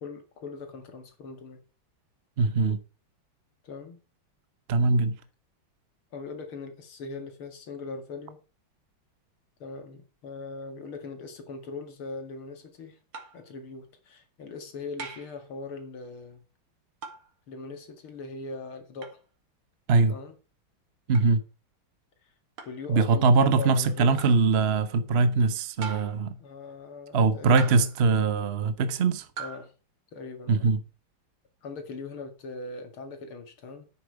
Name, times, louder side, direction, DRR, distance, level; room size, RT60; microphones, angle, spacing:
voice 1, 0.0-1.6 3.6-4.0 6.1-8.4 9.6-13.0 13.3-16.4 17.5-19.2 20.1-20.4 22.2-22.3 22.7-24.3 26.4-27.9 29.4-29.7 30.1-30.7 31.6-33.9, left 3 dB, 85° left, 2.9 m, -40 dB
voice 2, 2.4-2.8 4.7-5.2 19.9-20.1 21.1-21.4 22.9-26.4 27.1-29.3 30.5-30.8, right 4 dB, 45° right, 0.8 m, -22 dB
sound 1, 13.1-13.5 15.0-15.4 17.0-17.3 19.0-19.2 21.1-21.3 22.6-22.8 24.2-24.4 25.8-26.3 27.6-28.0 29.4-29.7, right 5 dB, 85° right, 2.8 m, -40 dB
10.5 x 8.9 x 4.7 m
omnidirectional pair, 2.3 m